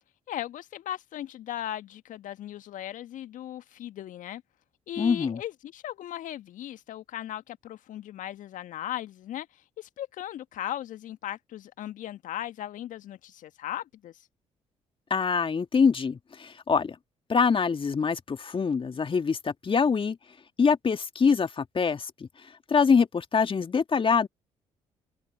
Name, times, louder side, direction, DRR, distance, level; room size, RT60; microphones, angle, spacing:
voice 1, 0.3-4.4 4.9-14.2, left 12 dB, 60° left, 1.7 m, -37 dB
voice 2, 5.0-5.4 15.1-17.0 17.3-20.2 20.6-22.1 22.7-24.3, left 5 dB, 35° left, 2.0 m, -24 dB
open air
figure-of-eight pair, 45°, 15 cm